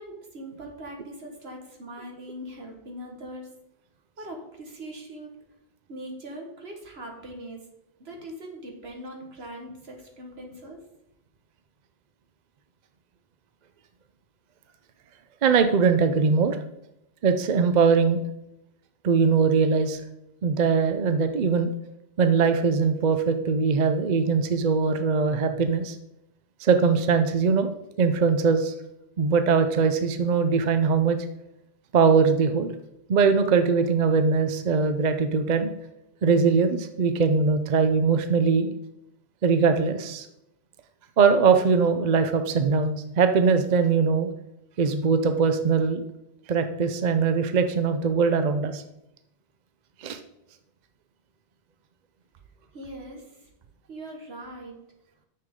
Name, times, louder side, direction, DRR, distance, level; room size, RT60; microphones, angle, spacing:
voice 1, 0.0-3.5 4.2-5.3 5.9-7.6 8.0-10.8 52.7-53.5 53.9-54.9, right 1 dB, 80° right, 1 dB, 1.8 m, -41 dB
voice 2, 15.4-16.6 17.2-18.2 19.0-20.0 20.4-21.7 22.2-26.0 26.6-27.7 28.0-28.7 29.2-31.2 31.9-32.7 33.1-35.7 36.2-38.7 39.4-40.3 41.2-44.3 44.8-46.0 46.5-48.8 50.0-50.2, right 5 dB, 50° right, 8 dB, 0.7 m, -21 dB
9.5 x 6.7 x 3.7 m, 0.85 s
omnidirectional pair, 1.0 m